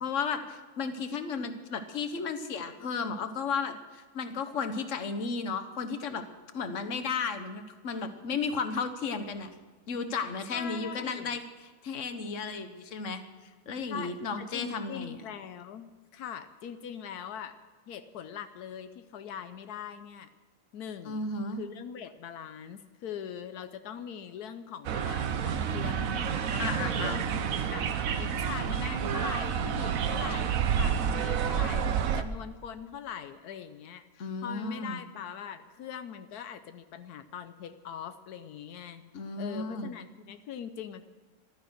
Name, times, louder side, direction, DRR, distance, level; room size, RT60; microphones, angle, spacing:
voice 1, 0.0-6.2 6.5-9.5 9.9-15.2 21.0-21.6 26.6-27.3 34.2-35.0 39.1-39.9, left 5 dB, 55° left, 8 dB, 1.5 m, -34 dB
voice 2, 10.5-11.4 13.9-17.6 17.9-20.3 20.7-21.3 21.6-26.8 27.7-27.9 28.2-39.0 39.4-41.1, left 8 dB, 85° left, 10 dB, 1.2 m, -42 dB
sound 1, 24.8-32.2, right 7 dB, 65° right, 1.2 m, -29 dB
15.0 x 12.5 x 6.4 m, 1.4 s
omnidirectional pair, 1.6 m